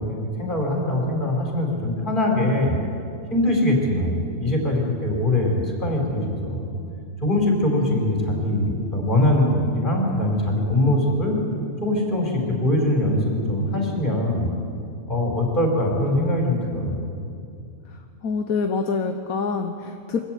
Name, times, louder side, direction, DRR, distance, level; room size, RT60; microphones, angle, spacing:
voice 1, 0.0-2.8 3.3-6.7 7.2-11.4 11.8-14.5 15.1-17.1, left 1 dB, 35° left, 0 dB, 5.1 m, -22 dB
voice 2, 17.8-20.2, left 4 dB, 80° left, 5 dB, 1.5 m, -26 dB
25.0 x 14.0 x 9.3 m, 2.4 s
omnidirectional pair, 1.5 m